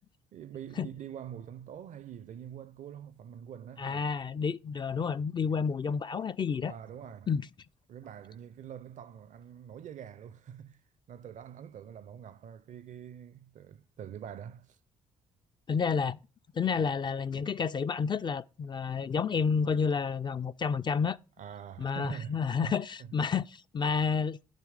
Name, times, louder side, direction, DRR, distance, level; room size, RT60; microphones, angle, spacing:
voice 1, 0.3-4.1 6.7-7.3 7.9-10.8 11.1-14.8 21.4-22.7 23.0-23.1, right 9 dB, 55° right, 0.5 m, -45 dB
voice 2, 3.8-6.8 7.3-7.5 15.7-16.2 16.5-21.2 21.8-24.4, left 6 dB, 30° left, 0.4 m, -30 dB
10.0 x 3.4 x 4.8 m
hypercardioid pair, 50°, 15 cm